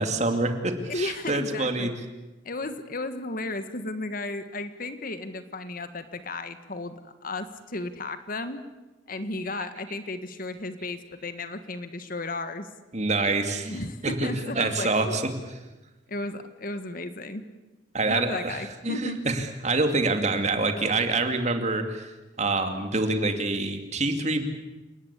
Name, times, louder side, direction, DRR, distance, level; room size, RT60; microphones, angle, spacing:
voice 1, 0.0-1.9 12.9-15.2 17.9-22.1 22.4-24.5, right 3 dB, 40° right, 6 dB, 2.6 m, -26 dB
voice 2, 0.9-1.9 2.4-8.6 9.1-12.7 13.7-15.2 16.1-17.4 18.1-19.2, left 2 dB, 50° left, 10 dB, 1.7 m, -34 dB
29.0 x 19.0 x 8.4 m, 1.1 s
head